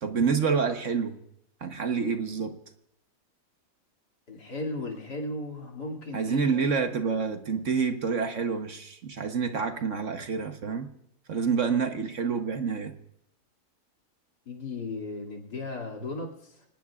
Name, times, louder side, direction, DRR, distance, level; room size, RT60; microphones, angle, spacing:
voice 1, 0.0-1.2 1.6-2.6 6.1-10.9 11.3-12.9, right 5 dB, 50° right, 6 dB, 1.3 m, -28 dB
voice 2, 4.3-6.6 14.5-16.6, left 2 dB, 80° left, -1 dB, 3.2 m, -36 dB
26.0 x 19.0 x 2.4 m, 0.77 s
omnidirectional pair, 1.7 m